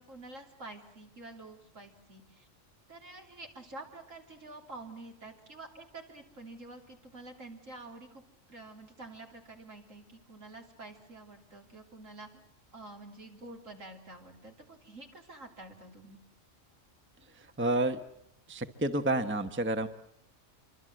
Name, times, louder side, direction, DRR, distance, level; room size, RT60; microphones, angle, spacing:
voice 1, 0.0-2.5 2.9-8.2 8.5-12.4 12.7-16.2, right 2 dB, 70° right, 2 dB, 4.0 m, -48 dB
voice 2, 17.6-18.0 18.5-19.9, right 1 dB, 10° right, 9 dB, 0.9 m, -29 dB
27.0 x 24.5 x 7.7 m, 0.74 s
omnidirectional pair, 1.4 m